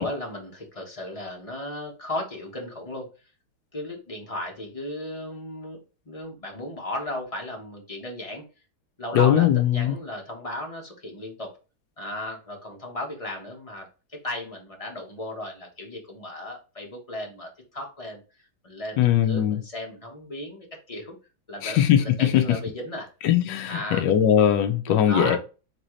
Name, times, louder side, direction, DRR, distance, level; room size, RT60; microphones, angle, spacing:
voice 1, 0.0-3.1 3.7-8.4 9.0-11.5 12.0-21.1 21.5-23.1 23.7-24.1 24.9-25.4, left 1 dB, 25° left, 0.8 m, -35 dB
voice 2, 9.1-10.0 19.0-19.6 21.6-22.6 23.2-25.4, left 10 dB, 70° left, 1.1 m, -20 dB
4.0 x 3.7 x 3.1 m
omnidirectional pair, 2.2 m